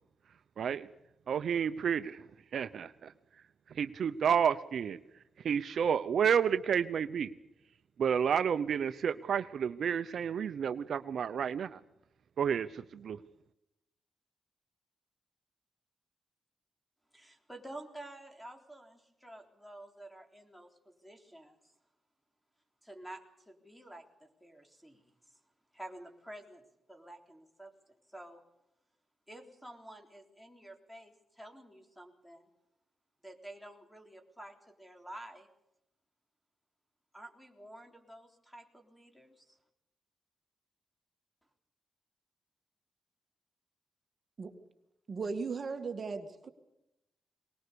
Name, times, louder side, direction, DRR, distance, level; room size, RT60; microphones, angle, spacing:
voice 1, 0.6-0.9 1.3-2.2 2.5-3.1 3.8-5.0 5.4-7.3 8.0-11.8 12.4-13.2, right 7 dB, 70° right, 11 dB, 0.7 m, -30 dB
voice 2, 17.1-21.7 22.8-25.4 25.7-28.4 29.3-32.5 33.2-35.5 37.1-39.6, right 1 dB, 5° left, 4 dB, 3.7 m, -50 dB
voice 3, 45.1-46.2, right 4 dB, 45° right, 7 dB, 2.0 m, -36 dB
23.5 x 19.5 x 6.9 m, 0.87 s
cardioid pair, 90°, 0 cm